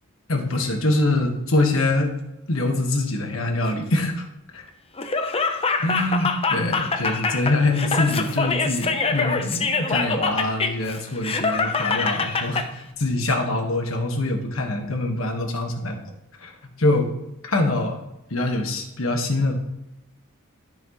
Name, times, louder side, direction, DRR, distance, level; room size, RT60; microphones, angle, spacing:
voice 1, 0.3-2.1 2.5-4.3 5.8-15.9 16.4-16.5 16.8-17.1 17.4-18.0 18.3-19.5, left 2 dB, 70° left, 3 dB, 1.5 m, -24 dB
Laughter, 5.0-12.7, left 4 dB, 25° left, 0.7 m, -24 dB
13.5 x 6.0 x 3.1 m, 0.90 s
head